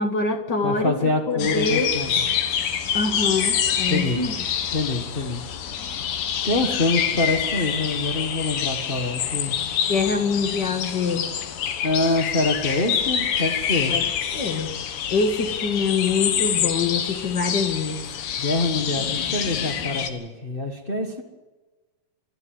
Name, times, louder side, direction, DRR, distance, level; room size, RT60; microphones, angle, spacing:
voice 1, 0.0-0.9 1.3-1.9 2.9-4.3 9.9-11.3 13.9-14.0 14.3-14.8 15.1-18.0, left 4 dB, 40° left, 5 dB, 1.7 m, -24 dB
voice 2, 0.6-2.1 3.9-4.2 4.7-5.4 6.4-9.5 11.8-13.9 18.4-21.2, left 2 dB, 60° left, 2 dB, 0.5 m, -25 dB
sound 1, 1.4-20.1, left 8 dB, 80° left, 3.1 m, -26 dB
29.0 x 12.0 x 7.8 m, 1.2 s
omnidirectional pair, 3.9 m